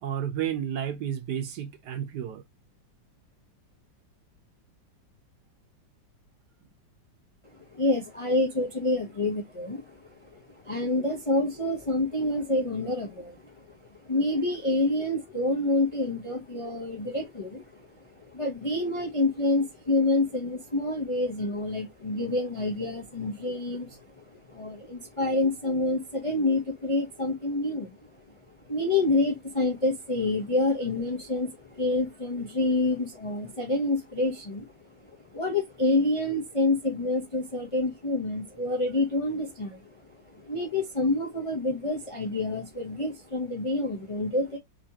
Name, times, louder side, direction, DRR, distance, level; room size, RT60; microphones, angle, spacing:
voice 1, 0.0-2.4, right 9 dB, 70° right, 1.2 m, -31 dB
voice 2, 7.7-17.9 18.1-27.9 28.7-34.7 35.1-39.9 40.3-44.6, left 2 dB, 60° left, 0.3 m, -28 dB
4.1 x 2.8 x 2.8 m
omnidirectional pair, 2.0 m